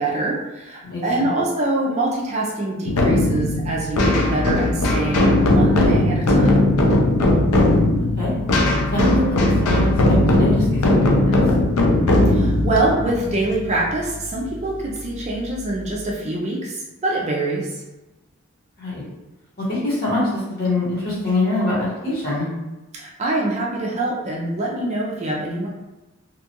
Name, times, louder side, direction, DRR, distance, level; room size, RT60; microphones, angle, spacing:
voice 1, 0.0-6.5 12.3-17.8 22.9-25.7, right 2 dB, 30° right, -3 dB, 0.4 m, -24 dB
voice 2, 0.8-1.3 8.0-8.3 8.9-11.4 18.8-19.0 19.6-22.5, left 2 dB, 45° left, -8 dB, 1.1 m, -24 dB
sound 1, 2.9-14.3, left 1 dB, 80° left, 0.5 m, -18 dB
2.8 x 2.3 x 2.8 m, 1.1 s
head